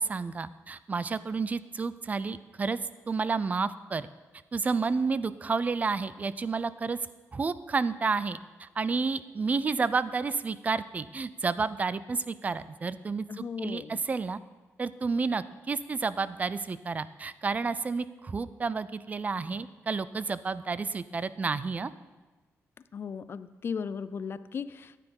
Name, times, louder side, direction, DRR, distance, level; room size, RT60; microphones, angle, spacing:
voice 1, 0.0-2.8 3.1-4.1 4.5-7.0 7.3-14.4 14.8-21.9, right 4 dB, 30° right, 16 dB, 0.5 m, -30 dB
voice 2, 13.3-14.0 22.9-25.0, left 6 dB, 45° left, 15 dB, 0.4 m, -36 dB
14.0 x 9.2 x 5.3 m, 1.2 s
wide cardioid pair, 135°, 5 cm